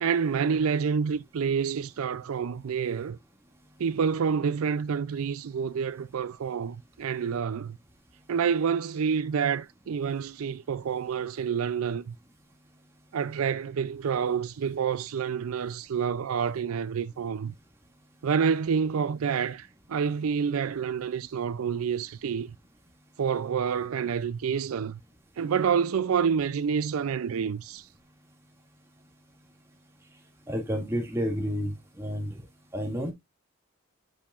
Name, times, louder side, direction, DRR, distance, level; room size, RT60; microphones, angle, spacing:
voice 1, 0.0-3.2 3.8-7.8 8.3-12.1 13.1-17.5 18.2-22.5 23.2-25.0 25.4-27.9, right 6 dB, 75° right, 0.4 m, -28 dB
voice 2, 30.5-31.7 32.0-32.4 32.7-33.1, equal, 10° right, 2.1 m, -30 dB
8.6 x 6.7 x 2.4 m
head